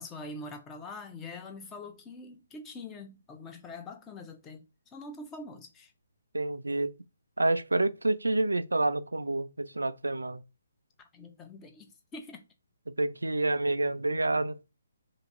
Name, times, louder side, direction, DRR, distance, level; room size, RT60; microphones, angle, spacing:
voice 1, 0.0-4.7 4.9-5.9 11.0-12.4, left 2 dB, 15° left, 0.6 m, -44 dB
voice 2, 6.3-6.9 7.4-10.4 12.9-14.6, right 2 dB, 85° right, 0.3 m, -28 dB
3.0 x 2.6 x 2.5 m
figure-of-eight pair, 140°, 0 cm